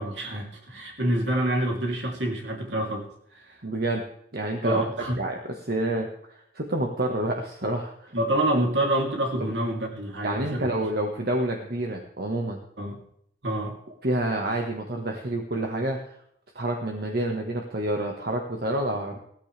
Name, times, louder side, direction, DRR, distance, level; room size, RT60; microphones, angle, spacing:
voice 1, 0.0-3.1 3.3-3.6 4.6-5.2 8.1-10.7 12.8-13.0 13.4-13.8, right 1 dB, 75° right, 0 dB, 3.2 m, -27 dB
voice 2, 3.6-4.0 4.3-4.8 5.2-8.1 9.4-9.5 10.2-12.6 14.0-16.2 16.5-19.2, right 1 dB, 55° right, 2 dB, 1.6 m, -28 dB
16.5 x 14.5 x 3.4 m, 0.68 s
head